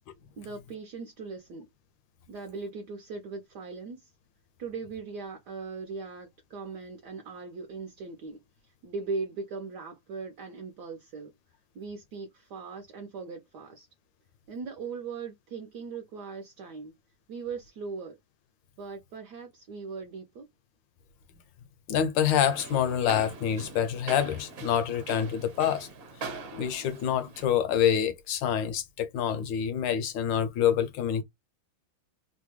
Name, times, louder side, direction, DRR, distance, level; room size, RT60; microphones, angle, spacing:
voice 1, 0.4-1.7 2.3-4.1 4.6-8.4 8.8-11.3 11.7-13.9 14.5-16.9 17.3-18.2 18.8-20.5, right 4 dB, 70° right, 1.1 m, -39 dB
voice 2, 21.9-25.9 26.2-31.2, left 9 dB, 75° left, 1.2 m, -27 dB
sound 1, 22.4-27.5, right 4 dB, 50° right, 1.2 m, -42 dB
3.3 x 2.2 x 3.0 m
omnidirectional pair, 2.3 m